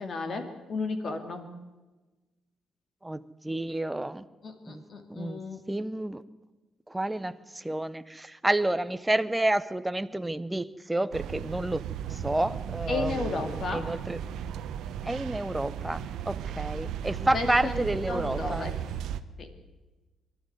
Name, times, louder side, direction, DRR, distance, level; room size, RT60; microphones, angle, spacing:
voice 1, 0.0-1.5 4.4-5.6 12.9-13.9 17.3-18.8 19.4-19.5, left 3 dB, 40° left, 7 dB, 2.4 m, -34 dB
voice 2, 3.0-4.2 4.7-4.8 5.1-5.4 5.7-6.2 6.9-11.8 12.1-14.2 15.0-18.7, right 1 dB, 10° right, 13 dB, 0.7 m, -30 dB
sound 1, 11.1-19.2, right 9 dB, 85° right, 0.9 m, -35 dB
23.0 x 12.5 x 9.5 m, 1.2 s
cardioid pair, 155°, 0 cm